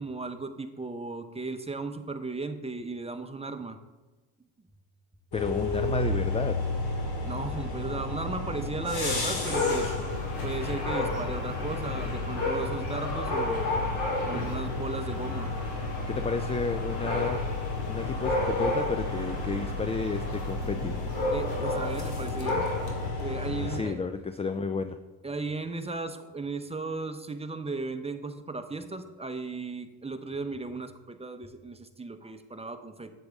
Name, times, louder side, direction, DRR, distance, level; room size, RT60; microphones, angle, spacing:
voice 1, 0.0-3.8 7.2-10.0 10.4-13.7 14.3-15.5 21.3-22.6 23.2-24.0 25.2-33.1, right 3 dB, 15° right, 7 dB, 0.9 m, -36 dB
sound 1, 5.3-23.8, left 2 dB, 55° left, 2.3 m, -32 dB
voice 2, 5.3-6.6 14.3-14.5 16.1-17.4 17.9-21.0 23.6-25.0, left 4 dB, 15° left, 9 dB, 0.4 m, -32 dB
Dog, 9.3-23.1, left 2 dB, 80° left, 2.6 m, -33 dB
8.0 x 7.9 x 3.6 m, 1.2 s
hypercardioid pair, 55°, 46 cm